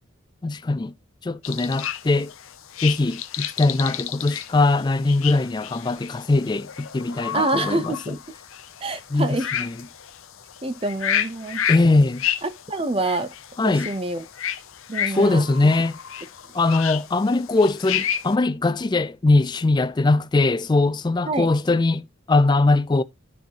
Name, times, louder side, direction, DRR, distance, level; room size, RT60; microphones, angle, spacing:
voice 1, 0.4-0.9 1.2-2.3 2.8-8.2 9.1-9.9 11.7-12.3 13.6-13.9 15.1-16.0 16.5-23.0, left 2 dB, 20° left, 0.3 m, -21 dB
sound 1, 1.4-18.3, left 10 dB, 80° left, 0.7 m, -31 dB
voice 2, 7.3-8.2 8.8-9.5 10.6-11.6 12.7-13.3 13.6-14.2 14.9-15.4 21.3-21.5, right 2 dB, 25° right, 0.6 m, -26 dB
11.5 x 4.5 x 2.8 m
head